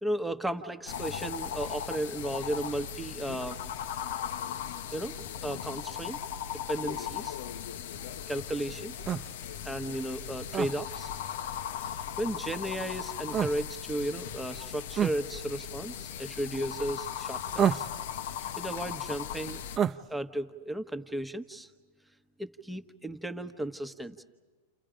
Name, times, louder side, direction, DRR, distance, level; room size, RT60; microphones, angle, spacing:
voice 1, 0.0-3.6 4.9-5.2 5.4-6.2 6.7-7.4 8.3-8.9 9.6-11.1 11.8-17.9 18.6-19.6 20.1-21.7 22.4-24.2, right 1 dB, 5° right, 7 dB, 1.2 m, -34 dB
sound 1, 0.9-19.8, left 9 dB, 70° left, 0.8 m, -38 dB
sound 2, 9.1-9.3 10.5-10.7 13.3-13.6 15.0-15.2 17.6-18.0 19.8-20.0, right 9 dB, 25° right, 0.7 m, -27 dB
29.0 x 29.0 x 5.1 m, 1.3 s
hypercardioid pair, 125°, 0 cm